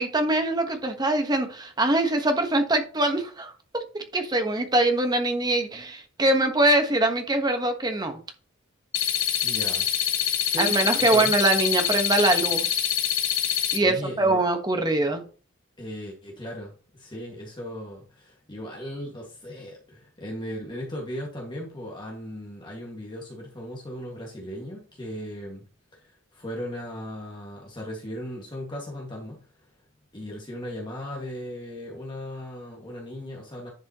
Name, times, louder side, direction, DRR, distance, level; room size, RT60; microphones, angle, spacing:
voice 1, 0.0-8.2 10.6-12.8 13.7-15.2, right 2 dB, 20° right, 1.3 m, -23 dB
sound 1, 8.9-13.8, left 10 dB, 80° left, 1.4 m, -25 dB
voice 2, 9.4-9.9 10.2-11.3 13.8-14.4 15.8-25.6 25.9-29.7 30.1-33.7, equal, 25° left, 1.9 m, -37 dB
10.5 x 5.4 x 3.0 m
head